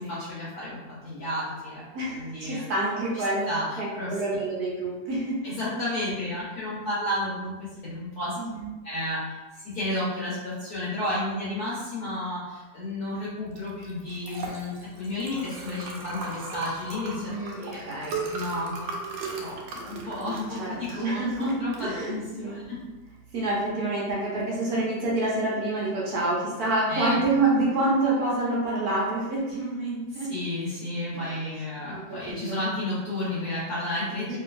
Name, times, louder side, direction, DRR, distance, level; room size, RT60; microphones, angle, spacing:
voice 1, 0.0-1.8 2.1-2.6 3.1-4.1 5.4-8.4 8.8-17.8 18.3-18.9 19.3-22.8 26.9-27.2 27.5-27.8 30.3-34.4, left 1 dB, 60° left, -8 dB, 1.2 m, -32 dB
voice 2, 1.9-3.5 3.8-5.4 8.4-8.7 17.2-18.2 20.5-22.6 23.3-30.3 31.1-31.2 31.9-32.6 34.3-34.4, right 2 dB, 65° right, -5 dB, 1.1 m, -27 dB
Liquid, 13.5-23.7, right 3 dB, 85° right, 1.3 m, -38 dB
3.1 x 2.8 x 2.5 m, 1.2 s
omnidirectional pair, 2.0 m